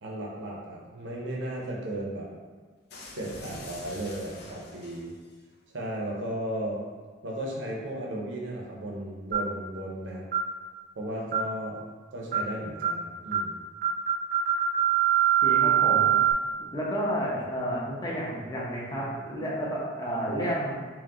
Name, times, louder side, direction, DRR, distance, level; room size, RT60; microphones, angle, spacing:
voice 1, 0.0-2.3 3.1-5.1 5.7-6.8 7.2-10.2 11.0-11.8 12.1-13.5, right 1 dB, 65° right, -3 dB, 0.7 m, -35 dB
sound 1, 2.9-5.4, left 2 dB, 55° left, 0.6 m, -45 dB
sound 2, 9.3-9.6 10.3-10.5 11.3-11.6 12.3-12.5 12.8-13.0 13.3-13.5 13.8-16.3, right 9 dB, 40° right, 0.3 m, -24 dB
voice 2, 15.4-16.1 16.7-20.7, equal, 20° left, -5 dB, 0.8 m, -31 dB
4.5 x 2.3 x 3.7 m, 1.5 s
head